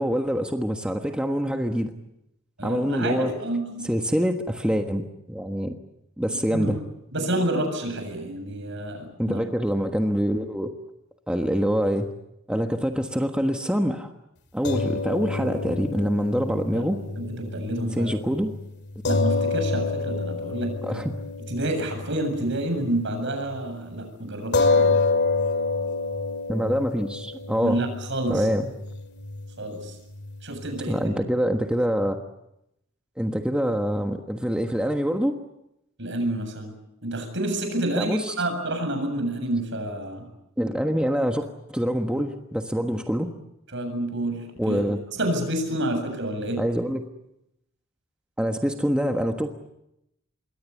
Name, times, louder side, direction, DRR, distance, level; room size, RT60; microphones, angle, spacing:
voice 1, 0.0-1.9 2.6-3.3 3.8-5.7 6.2-6.8 9.2-10.7 11.3-12.1 12.5-14.1 14.5-17.0 17.9-18.5 20.8-21.2 26.5-27.8 28.3-28.7 30.9-32.2 33.2-35.4 38.0-38.3 40.6-43.3 44.6-45.0 46.6-47.0 48.4-49.5, equal, 5° right, 4 dB, 1.3 m, -25 dB
voice 2, 2.6-3.9 6.5-6.7 7.1-9.4 16.7-16.9 17.2-18.2 19.1-21.0 21.5-25.0 27.6-28.5 29.6-30.0 30.4-31.0 36.0-36.7 37.0-40.3 43.7-44.8 45.1-46.7, right 1 dB, 60° right, 5 dB, 7.6 m, -29 dB
sound 1, 14.6-23.2 23.5-23.6 24.5-31.1, left 3 dB, 55° left, 2.2 m, -28 dB
27.0 x 22.5 x 8.4 m, 0.84 s
head